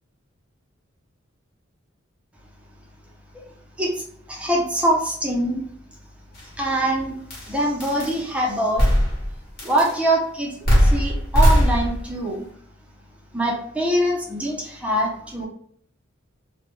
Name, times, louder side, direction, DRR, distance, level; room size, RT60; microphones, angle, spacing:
voice 1, 3.8-5.6 6.4-7.2 7.4-8.9 9.6-12.5 13.3-15.5, right 1 dB, 5° right, -2 dB, 0.5 m, -24 dB
sound 1, 6.4-6.5 7.3-7.5 7.8-8.2 8.8-9.3 9.6-9.9 10.6-12.1, equal, 50° left, 1.1 m, -18 dB
2.2 x 2.1 x 3.0 m, 0.63 s
head